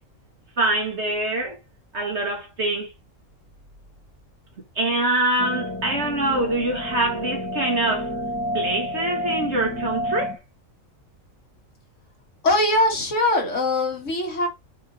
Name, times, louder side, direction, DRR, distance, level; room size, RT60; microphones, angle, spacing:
voice 1, 0.6-1.6 1.9-2.9 4.8-8.1 8.5-10.4, right 2 dB, 55° right, 2.4 m, -24 dB
sound 1, 5.4-10.4, equal, 15° left, 1.0 m, -29 dB
voice 2, 12.4-14.5, left 2 dB, 65° left, 2.2 m, -21 dB
6.3 x 4.5 x 3.9 m
omnidirectional pair, 1.4 m